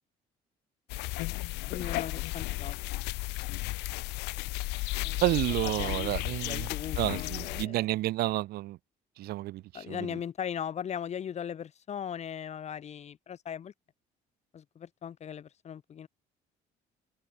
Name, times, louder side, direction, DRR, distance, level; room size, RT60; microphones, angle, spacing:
sound 1, 0.9-7.7, left 22 dB, 85° left, 0.4 m, -34 dB
voice 1, 1.7-2.8 5.0-5.2 5.8-7.9 9.7-13.7 14.5-16.1, left 8 dB, 40° left, 1.0 m, -39 dB
voice 2, 5.2-6.7 7.0-8.8 9.2-10.1, right 17 dB, 70° right, 0.4 m, -30 dB
cardioid pair, 110°, 17 cm